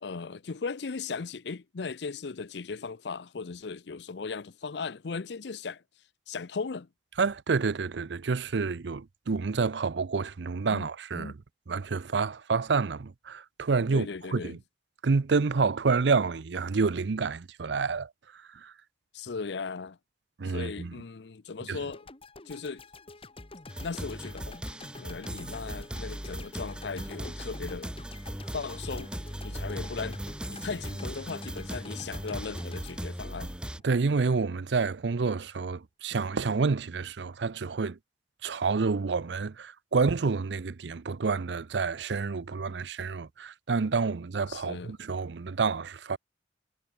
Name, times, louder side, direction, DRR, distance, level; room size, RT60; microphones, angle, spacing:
voice 1, 0.0-5.8 6.3-6.9 10.7-10.9 11.1-11.3 13.9-14.6 19.1-20.0 20.4-22.1 22.5-22.9 23.8-24.6 25.0-27.9 28.5-29.1 29.4-30.2 30.5-33.6 44.5-45.0, left 4 dB, 70° left, 0.6 m, -37 dB
voice 2, 7.2-11.3 11.7-14.1 14.3-14.6 15.0-18.1 18.6-18.7 20.4-20.9 21.7-21.8 33.8-38.0 38.4-46.2, right 4 dB, 75° right, 0.6 m, -28 dB
sound 1, 21.9-34.1, left 2 dB, 30° left, 1.8 m, -48 dB
sound 2, 23.7-33.8, equal, 5° right, 0.7 m, -38 dB
head